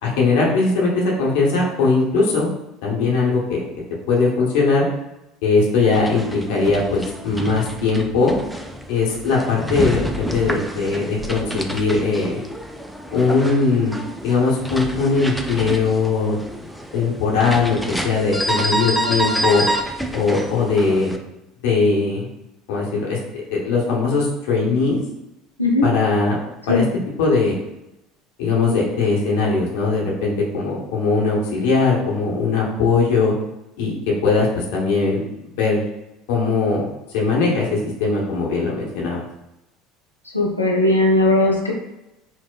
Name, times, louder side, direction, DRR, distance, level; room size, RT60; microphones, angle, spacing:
voice 1, 0.0-2.5 2.8-3.6 4.1-4.9 5.4-8.3 8.9-12.4 13.1-14.0 14.2-16.4 16.9-19.6 20.1-21.1 21.6-22.3 22.7-25.0 25.8-26.4 26.7-26.8 27.2-27.5 28.4-33.3 33.8-35.8 36.3-36.9 37.1-39.2, left 4 dB, 60° left, -3 dB, 0.8 m, -20 dB
sound 1, 5.8-21.2, equal, ahead, 0.3 m, -28 dB
voice 2, 40.3-41.7, left 2 dB, 90° left, -2 dB, 0.5 m, -17 dB
4.5 x 2.0 x 2.2 m, 0.91 s
figure-of-eight pair, 65°, 0 cm